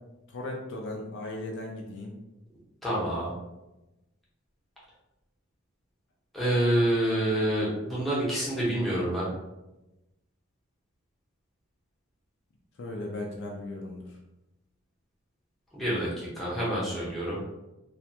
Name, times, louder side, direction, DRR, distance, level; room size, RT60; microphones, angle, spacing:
voice 1, 0.3-2.1 12.8-14.2, left 2 dB, 55° left, -1 dB, 0.4 m, -37 dB
voice 2, 2.8-3.3 6.3-9.3 15.7-17.4, right 1 dB, ahead, -8 dB, 0.7 m, -27 dB
2.4 x 2.2 x 2.7 m, 0.98 s
head